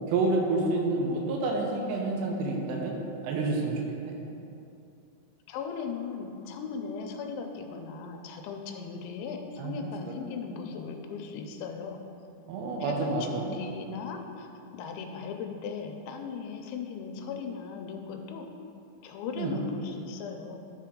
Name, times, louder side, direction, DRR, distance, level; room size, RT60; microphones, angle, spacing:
voice 1, 0.1-2.9 3.2-4.1 9.6-10.6 12.5-13.5 19.4-19.6, right 3 dB, 80° right, 0 dB, 2.8 m, -29 dB
voice 2, 5.5-12.0 12.8-14.5 14.7-18.5 19.0-20.6, left 5 dB, 90° left, 4 dB, 3.0 m, -38 dB
12.5 x 4.6 x 3.7 m, 2.7 s
omnidirectional pair, 5.3 m